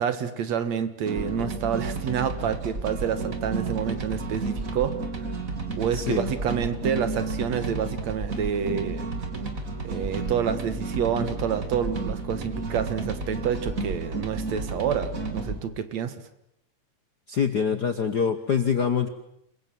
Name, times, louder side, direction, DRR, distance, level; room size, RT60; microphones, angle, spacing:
voice 1, 0.0-5.3 5.7-9.1 9.8-16.2, right 8 dB, 65° right, 11 dB, 2.7 m, -28 dB
sound 1, 1.0-15.6, right 3 dB, 30° right, 2.9 m, -32 dB
voice 2, 5.9-6.3 17.3-19.1, left 6 dB, 55° left, 8 dB, 1.2 m, -25 dB
28.0 x 23.0 x 7.6 m, 0.77 s
omnidirectional pair, 3.4 m